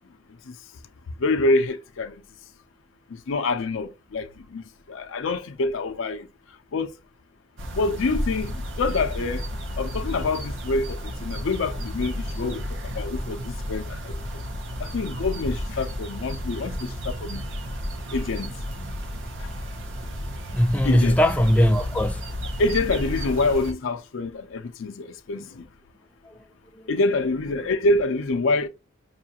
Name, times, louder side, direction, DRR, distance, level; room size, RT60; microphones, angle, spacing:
voice 1, 1.2-2.2 3.1-6.3 6.7-6.9 7.7-9.4 9.8-14.2 14.8-17.4 18.1-18.5 19.4-19.5 20.8-21.2 22.6-25.6 26.9-28.7, left 3 dB, 80° left, 0.5 m, -26 dB
sound 1, 7.6-23.7, equal, 70° right, 0.8 m, -32 dB
voice 2, 20.5-22.3 26.2-26.4 26.7-26.9, equal, 5° left, 0.4 m, -21 dB
5.3 x 2.4 x 2.8 m
head